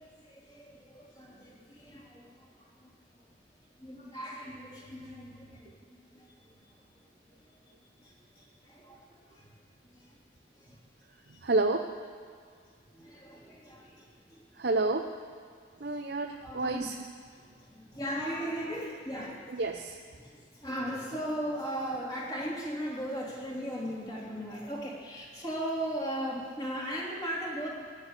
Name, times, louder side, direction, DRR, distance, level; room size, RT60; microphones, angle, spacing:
voice 1, 0.0-3.3 3.7-9.5 9.8-10.2 10.5-10.8 11.3-11.4 12.9-14.6 15.8-16.0 16.4-16.9 17.2-19.6 20.2-27.7, equal, 20° left, -4 dB, 3.0 m, -38 dB
voice 2, 11.4-11.9 14.6-15.1 15.8-16.9 19.5-20.0, right 2 dB, 60° right, 4 dB, 0.7 m, -29 dB
15.5 x 10.0 x 8.1 m, 2.1 s
head